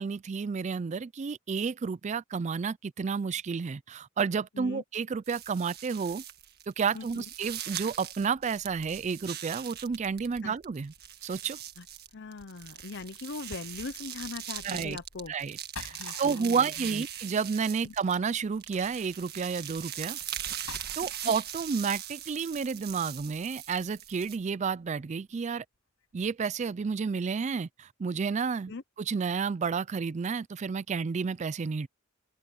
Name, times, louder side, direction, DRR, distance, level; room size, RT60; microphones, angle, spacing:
voice 1, 0.0-6.2 6.7-10.9 11.2-11.6 14.6-15.0 15.3-20.2 21.0-25.6 26.1-28.7 29.0-31.9, right 5 dB, 35° right, 0.3 m, -31 dB
sound 1, 5.3-10.4 10.6-18.3 18.6-24.4, right 11 dB, 50° right, 1.6 m, -41 dB
voice 2, 6.9-7.3 10.4-10.6 11.8-11.9 12.1-15.3 15.9-17.0 17.8-17.9 21.2-21.3 28.7-28.8, left 3 dB, 55° left, 0.8 m, -41 dB
sound 2, 8.3-21.9 22.6-25.0 25.3-25.5 26.0-26.3 26.6-27.0, left 4 dB, 80° left, 6.7 m, -52 dB
head